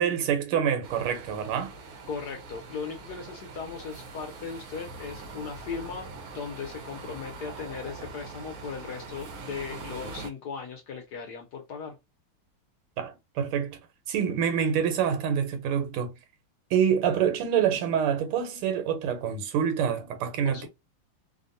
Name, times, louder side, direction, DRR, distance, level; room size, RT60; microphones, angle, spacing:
voice 1, 0.0-1.7 13.0-13.8 14.1-16.2 16.7-20.7, right 8 dB, 90° right, 1.6 m, -26 dB
sound 1, 0.8-10.3, right 3 dB, 70° right, 0.9 m, -43 dB
voice 2, 2.1-12.0 20.4-20.7, left 5 dB, 65° left, 1.1 m, -38 dB
3.4 x 2.2 x 2.5 m
omnidirectional pair, 2.3 m